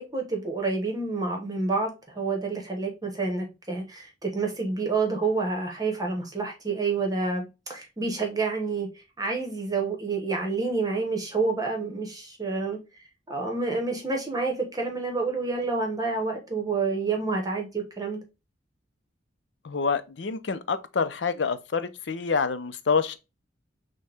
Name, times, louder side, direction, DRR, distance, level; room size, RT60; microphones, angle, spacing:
voice 1, 0.0-8.9 9.2-12.8 13.3-18.2, right 3 dB, 20° right, 1.1 m, -28 dB
voice 2, 19.6-23.2, left 5 dB, 70° left, 0.6 m, -27 dB
6.4 x 2.2 x 3.4 m
head